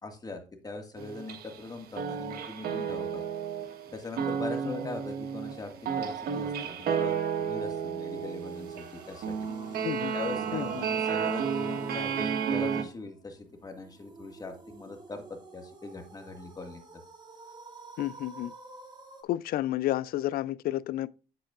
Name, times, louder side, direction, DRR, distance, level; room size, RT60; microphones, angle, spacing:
voice 1, 0.0-3.2 3.9-9.3 10.1-15.2 15.5-16.8, left 3 dB, 20° left, 1.8 m, -41 dB
sound 1, 1.0-1.7 1.9-12.8, right 7 dB, 65° right, 1.4 m, -32 dB
sound 2, 8.1-19.2, right 2 dB, 25° right, 2.4 m, -50 dB
voice 2, 9.8-10.1 10.5-10.9 18.0-18.5 19.2-21.1, left 14 dB, 60° left, 0.4 m, -31 dB
8.7 x 8.1 x 2.5 m
cardioid pair, 110°, 17 cm